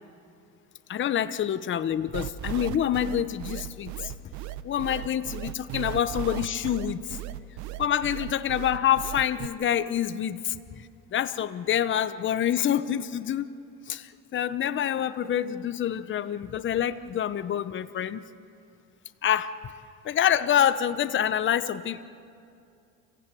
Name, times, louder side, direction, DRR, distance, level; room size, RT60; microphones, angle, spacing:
voice 1, 0.9-4.1 4.6-7.2 7.8-13.5 13.9-18.2 19.2-19.6 20.0-22.0, left 10 dB, 40° left, 12 dB, 0.9 m, -27 dB
sound 1, 2.1-9.5, right 13 dB, 70° right, 0.8 m, -36 dB
27.0 x 16.0 x 9.1 m, 2.5 s
supercardioid pair, 90°, 30 cm